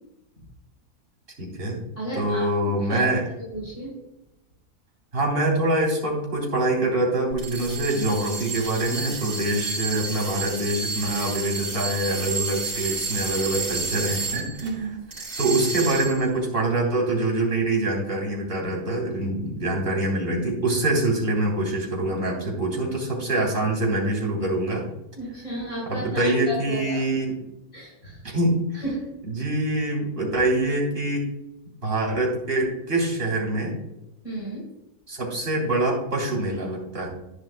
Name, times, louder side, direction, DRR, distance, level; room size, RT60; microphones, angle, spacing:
voice 1, 1.4-1.8 2.2-3.2 5.1-14.7 15.2-24.8 25.9-27.3 28.2-28.8 29.3-31.3 31.8-33.7 35.1-37.1, right 2 dB, 35° right, -3 dB, 3.6 m, -25 dB
voice 2, 2.0-2.5 2.9-3.0 3.5-3.9 14.6-15.0 25.2-27.0 27.7-28.2 28.7-29.0 34.2-34.6, right 1 dB, 60° left, -7 dB, 4.2 m, -32 dB
sound 1, 7.3-14.7 15.1-16.3, right 4 dB, 55° right, 4.2 m, -31 dB
11.5 x 10.5 x 2.2 m, 0.90 s
omnidirectional pair, 1.6 m